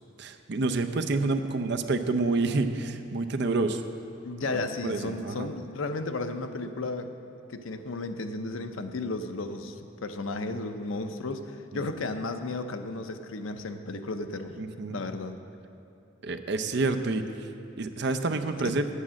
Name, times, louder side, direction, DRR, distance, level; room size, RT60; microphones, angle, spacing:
voice 1, 0.2-3.8 4.4-5.5 14.6-15.0 16.2-17.2 17.8-18.9, right 3 dB, 55° right, 7 dB, 0.6 m, -28 dB
voice 2, 4.2-7.1 7.5-14.6 14.9-15.3 18.6-18.8, left 3 dB, 85° left, 8 dB, 0.6 m, -34 dB
8.4 x 8.4 x 7.5 m, 2.7 s
head